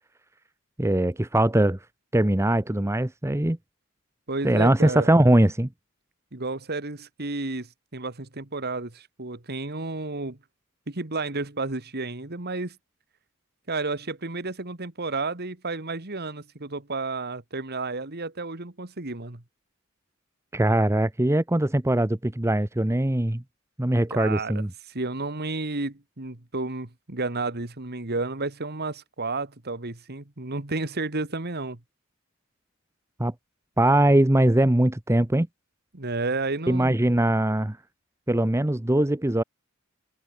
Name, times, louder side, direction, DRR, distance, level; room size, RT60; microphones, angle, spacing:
voice 1, 0.8-1.8 2.1-3.6 4.4-5.7 20.5-23.4 23.8-24.7 33.2-33.3 33.8-35.5 36.7-37.8 38.3-39.4, right 1 dB, 15° right, 0.8 m, -21 dB
voice 2, 4.3-5.1 6.3-10.4 10.9-12.8 13.7-19.4 24.1-31.8 35.9-36.9, right 3 dB, 50° right, 2.1 m, -31 dB
head